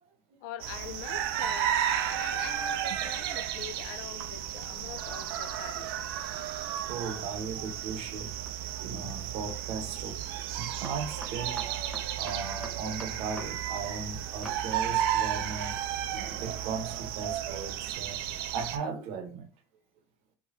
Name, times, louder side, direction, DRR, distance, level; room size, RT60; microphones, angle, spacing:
voice 1, 0.4-5.9 18.2-18.4, left 11 dB, 70° left, 0.4 m, -44 dB
sound 1, 0.6-18.8, right 10 dB, 80° right, 0.4 m, -33 dB
voice 2, 6.2-8.3 8.8-18.2 18.5-19.5, right 5 dB, 60° right, 0.8 m, -38 dB
sound 2, 8.4-8.8 10.8-13.5 13.8-13.9 14.4-14.6, equal, ahead, 0.7 m, -44 dB
3.1 x 2.2 x 2.8 m
supercardioid pair, 95°, 12 cm